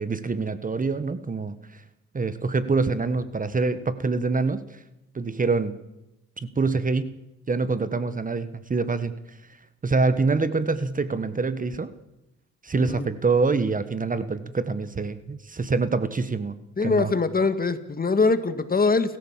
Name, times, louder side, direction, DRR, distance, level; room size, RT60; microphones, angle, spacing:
voice 1, 0.0-1.8 2.1-4.8 5.1-5.7 6.4-9.4 9.8-11.9 12.6-17.1, right 4 dB, 25° right, 13 dB, 1.4 m, -26 dB
voice 2, 12.8-13.1 16.8-19.2, left 4 dB, 30° left, 10 dB, 2.2 m, -23 dB
29.5 x 14.5 x 7.5 m, 0.92 s
cardioid pair, 90°, 30 cm